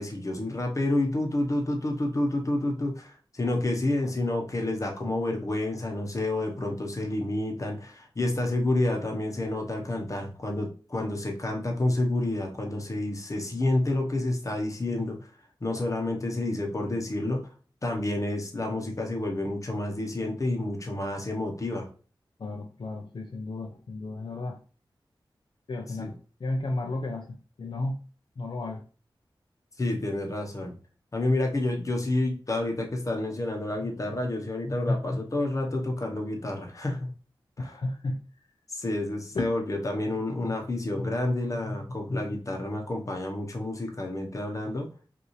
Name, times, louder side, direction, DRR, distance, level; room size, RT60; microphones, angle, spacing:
voice 1, 0.0-15.3 15.6-17.4 17.8-21.9 26.0-26.1 29.8-30.7 31.1-37.1 37.6-37.7 38.7-45.1, left 2 dB, 40° left, 2 dB, 1.0 m, -29 dB
voice 2, 22.4-24.6 25.7-26.1 26.4-28.0 28.4-28.8 37.6-38.2 39.3-39.4, left 2 dB, 65° left, 1 dB, 0.6 m, -33 dB
5.3 x 2.7 x 3.1 m, 0.38 s
wide cardioid pair, 105°, 9 cm